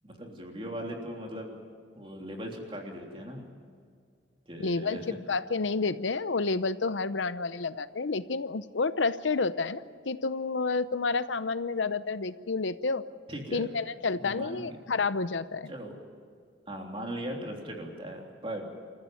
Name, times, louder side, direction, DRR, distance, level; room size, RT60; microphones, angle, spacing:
voice 1, 0.0-1.6 1.9-3.4 4.5-5.2 13.3-13.7 14.2-14.8 15.7-16.0 16.7-18.7, equal, 30° right, 1 dB, 3.4 m, -39 dB
voice 2, 4.6-13.0 13.5-15.7, left 4 dB, 85° left, 14 dB, 0.8 m, -30 dB
27.5 x 14.5 x 9.3 m, 2.2 s
head